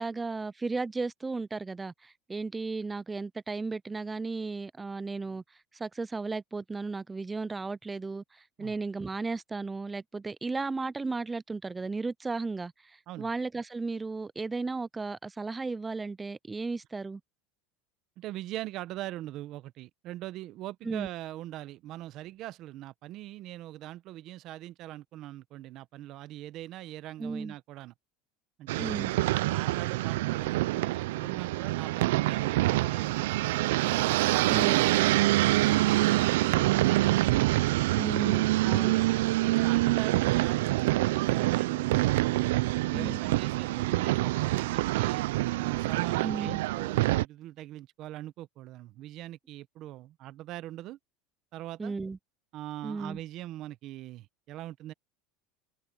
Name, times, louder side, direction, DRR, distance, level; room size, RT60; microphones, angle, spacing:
voice 1, 0.0-5.4 5.7-17.2 20.8-21.1 27.2-27.5 28.8-29.1 34.5-34.8 37.9-39.0 40.1-40.2 42.9-43.2 46.2-46.6 51.8-52.2 52.8-53.2, right 3 dB, 15° right, 0.4 m, -35 dB
voice 2, 18.2-27.9 28.6-28.9 29.4-37.6 38.1-39.0 39.4-45.2 45.6-51.0 51.5-51.9 52.5-54.9, right 14 dB, 50° right, 0.9 m, -42 dB
sound 1, 28.7-47.3, right 18 dB, 85° right, 0.4 m, -26 dB
supercardioid pair, 135°, 0 cm